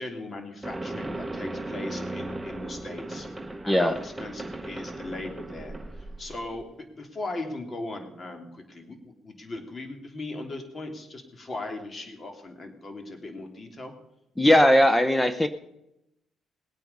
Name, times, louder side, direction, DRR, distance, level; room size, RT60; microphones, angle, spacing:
voice 1, 0.0-6.6 6.9-13.9, left 2 dB, 35° left, 4 dB, 3.0 m, -38 dB
sound 1, 0.6-6.6, right 2 dB, 10° right, 1.1 m, -37 dB
voice 2, 14.4-15.5, equal, 10° left, 10 dB, 0.8 m, -19 dB
20.0 x 9.0 x 5.4 m, 0.84 s
cardioid pair, 90°, 0 cm